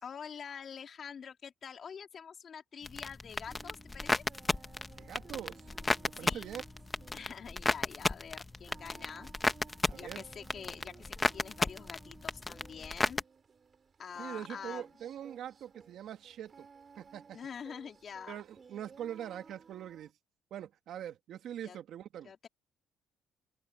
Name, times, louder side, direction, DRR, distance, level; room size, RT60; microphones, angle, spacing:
voice 1, 0.0-4.2 6.1-6.6 7.1-9.3 9.9-13.2 14.0-14.9 17.3-18.4 21.6-21.8 22.2-22.5, left 7 dB, 40° left, 3.7 m, -46 dB
sound 1, 2.8-13.2, left 2 dB, 15° left, 1.2 m, -34 dB
Singing, 3.5-20.1, right 5 dB, 35° right, 6.0 m, -57 dB
voice 2, 5.0-5.7 6.2-6.6 9.9-10.2 14.2-16.7 17.0-17.4 18.3-20.1 20.5-22.3, right 10 dB, 65° right, 2.2 m, -43 dB
cardioid pair, 115°, 0 cm